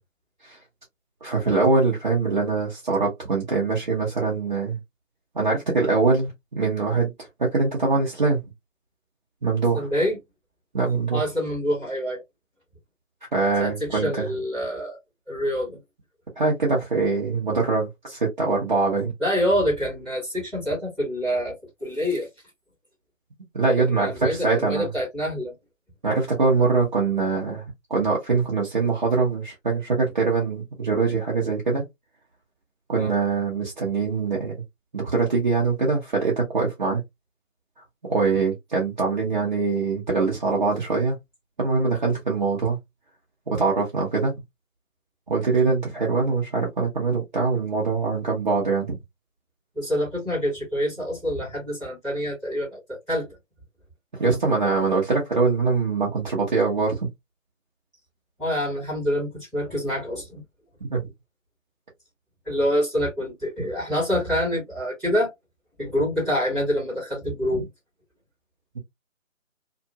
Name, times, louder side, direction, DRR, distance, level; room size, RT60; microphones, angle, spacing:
voice 1, 1.2-4.8 5.3-8.4 9.4-9.9 10.7-11.2 13.3-14.3 16.4-19.1 23.5-24.9 26.0-27.6 27.9-31.8 32.9-34.5 34.9-37.0 38.0-41.2 41.6-42.8 43.5-44.3 45.3-49.0 54.1-57.0 60.9-61.0, right 4 dB, 35° right, 0.8 m, -23 dB
voice 2, 9.7-10.2 11.1-12.2 13.6-15.0 15.3-15.8 19.2-22.3 23.8-25.5 33.0-33.1 38.3-38.4 49.7-53.4 58.4-60.4 62.4-65.3 65.8-67.7, equal, ahead, 1.3 m, -26 dB
2.8 x 2.5 x 2.3 m
figure-of-eight pair, 155°, 40 cm